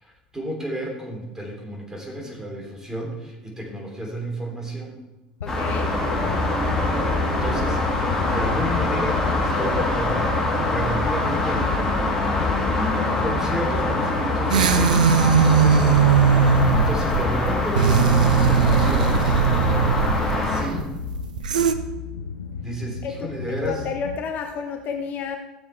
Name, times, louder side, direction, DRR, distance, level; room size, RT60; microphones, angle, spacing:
voice 1, 0.0-5.0 7.3-10.3 10.6-11.8 12.3-15.0 15.7-16.0 16.3-19.4 20.3-20.9 22.6-23.8, equal, 10° right, 0 dB, 3.4 m, -32 dB
sound 1, 5.4-24.2, left 6 dB, 75° left, 0.7 m, -35 dB
voice 2, 5.4-5.9 23.0-25.4, left 6 dB, 40° left, 4 dB, 1.0 m, -31 dB
sound 2, 5.5-20.6, left 2 dB, 15° left, 3.7 m, -24 dB
sound 3, 14.5-21.7, right 6 dB, 75° right, 0.6 m, -19 dB
13.5 x 7.5 x 4.6 m, 1.0 s
figure-of-eight pair, 70°, 4 cm